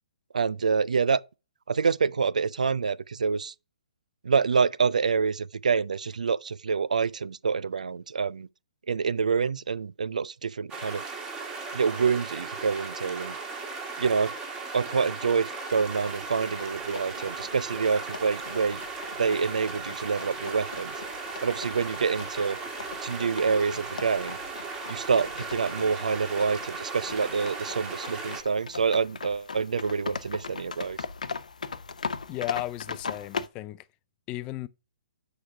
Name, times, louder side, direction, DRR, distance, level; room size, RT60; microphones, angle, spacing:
voice 1, 0.3-1.2 1.7-3.5 4.2-8.5 8.9-11.0 11.7-13.4 14.0-14.3 14.7-18.8 19.2-20.9 21.4-22.6 23.0-24.4 24.9-31.0, right 5 dB, 80° right, 0.3 m, -27 dB
sound 1, 10.7-28.4, right 4 dB, 20° right, 1.9 m, -37 dB
sound 2, 15.7-33.5, left 5 dB, 80° left, 0.6 m, -40 dB
voice 2, 32.3-33.9 34.3-34.7, left 16 dB, 25° left, 0.4 m, -35 dB
6.3 x 4.9 x 5.6 m
hypercardioid pair, 135°, 4 cm